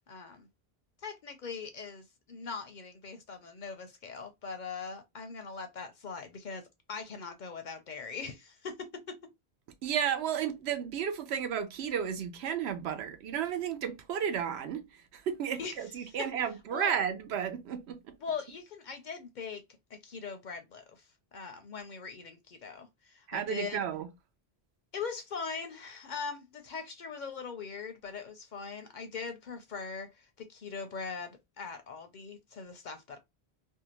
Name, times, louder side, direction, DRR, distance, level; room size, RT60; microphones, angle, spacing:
voice 1, 0.1-0.5 1.0-9.2 15.6-15.7 16.0-16.3 16.7-16.9 18.2-19.6 19.9-23.8 24.9-33.2, left 5 dB, 55° left, 0.6 m, -41 dB
voice 2, 9.8-18.2 23.3-24.1, right 8 dB, 85° right, 0.9 m, -33 dB
2.6 x 2.2 x 2.8 m
omnidirectional pair, 1.1 m